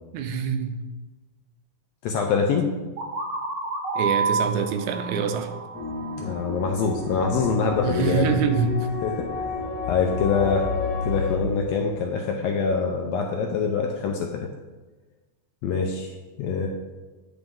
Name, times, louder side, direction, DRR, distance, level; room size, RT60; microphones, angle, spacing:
voice 1, 0.1-0.8 4.0-5.5 7.8-8.9, right 6 dB, 80° right, 6 dB, 1.9 m, -25 dB
voice 2, 2.0-2.7 6.2-8.4 9.0-9.3 9.9-10.7 11.0-14.5 15.6-16.1 16.4-16.7, left 5 dB, 80° left, 2 dB, 1.5 m, -24 dB
sound 1, 3.0-6.7, right 4 dB, 65° right, 1.4 m, -29 dB
sound 2, 5.7-11.4, left 4 dB, 50° left, 1.1 m, -30 dB
10.0 x 4.0 x 3.6 m, 1.2 s
omnidirectional pair, 3.4 m